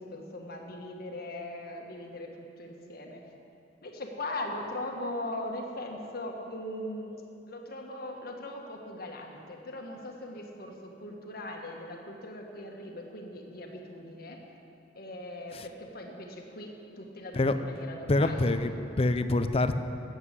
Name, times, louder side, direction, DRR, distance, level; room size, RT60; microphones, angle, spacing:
voice 1, 0.0-3.2 3.8-7.2 7.5-14.4 14.9-16.7 17.0-18.5, left 1 dB, 60° left, 1 dB, 1.4 m, -40 dB
voice 2, 18.1-19.8, left 2 dB, 35° left, 10 dB, 0.6 m, -25 dB
12.5 x 8.0 x 8.2 m, 2.7 s
head